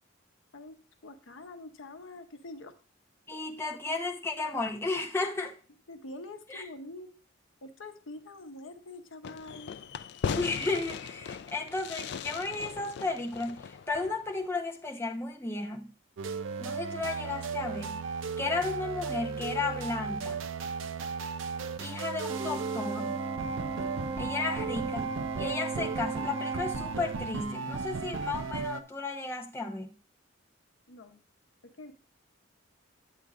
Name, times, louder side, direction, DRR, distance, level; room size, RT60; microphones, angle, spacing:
voice 1, 0.5-2.8 5.9-7.2 7.6-9.7 30.9-31.2 31.6-31.9, left 2 dB, 80° left, 0.8 m, -45 dB
voice 2, 3.3-5.5 6.5-6.6 10.3-15.9 16.6-18.0 18.4-20.4 21.8-23.2 24.2-25.1 25.3-29.9, left 3 dB, 15° left, 0.8 m, -34 dB
Fireworks, 9.2-14.5, left 6 dB, 60° left, 0.3 m, -38 dB
sound 1, 16.2-28.8, right 4 dB, 80° right, 0.5 m, -35 dB
Organ, 22.3-27.3, right 3 dB, 20° right, 0.6 m, -37 dB
9.1 x 8.4 x 2.4 m
head